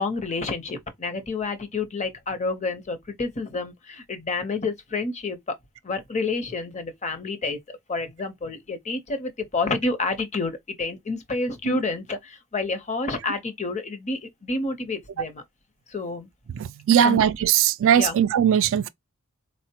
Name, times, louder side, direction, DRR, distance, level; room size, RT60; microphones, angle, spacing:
voice 1, 0.0-5.6 5.8-15.4 15.9-16.3 17.0-17.2 17.9-18.2, left 3 dB, 30° left, 0.7 m, -29 dB
voice 2, 16.5-18.9, right 9 dB, 60° right, 0.3 m, -20 dB
4.0 x 2.1 x 2.8 m
head